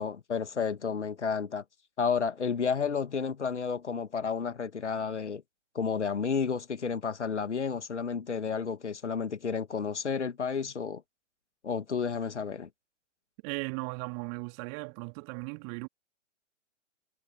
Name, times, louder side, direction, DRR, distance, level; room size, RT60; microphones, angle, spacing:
voice 1, 0.0-1.6 2.0-5.4 5.7-11.0 11.6-12.7, left 6 dB, 70° left, 2.0 m, -31 dB
voice 2, 13.4-15.9, right 40 dB or more, 30° right, 3.7 m, -37 dB
figure-of-eight pair, 115°, 37 cm